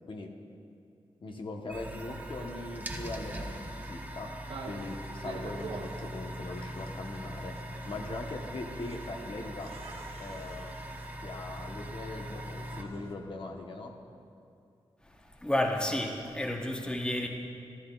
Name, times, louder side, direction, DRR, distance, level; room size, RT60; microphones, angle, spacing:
voice 1, 1.2-4.3 4.7-7.5 7.9-9.7 10.2-10.8 11.2-13.9, left 2 dB, 55° left, 2 dB, 1.0 m, -40 dB
sound 1, 1.7-12.8, right 1 dB, 15° right, 0.9 m, -41 dB
sound 2, 4.4-13.2, right 3 dB, 80° right, 0.9 m, -47 dB
voice 2, 15.3-17.3, left 1 dB, 10° left, 2 dB, 0.9 m, -31 dB
14.5 x 12.0 x 2.3 m, 2.5 s
cardioid pair, 70°, 10 cm